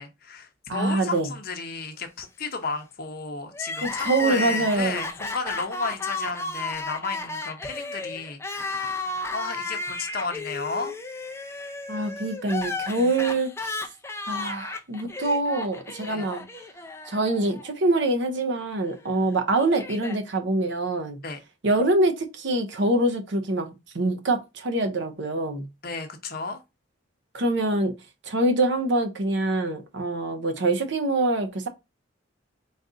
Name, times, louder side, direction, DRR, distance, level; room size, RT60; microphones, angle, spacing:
voice 1, 0.0-10.9 16.1-16.3 21.2-21.4 25.8-26.6, left 4 dB, 45° left, 0.7 m, -33 dB
voice 2, 0.7-1.3 3.8-5.0 11.9-13.8 14.3-16.4 17.1-21.2 21.6-25.6 27.3-27.9 28.2-31.7, right 2 dB, 60° right, 0.7 m, -25 dB
Crying sobbing, 3.5-17.7 18.0-18.1 19.0-20.2, left 3 dB, 15° left, 0.4 m, -33 dB
4.0 x 2.5 x 3.8 m
head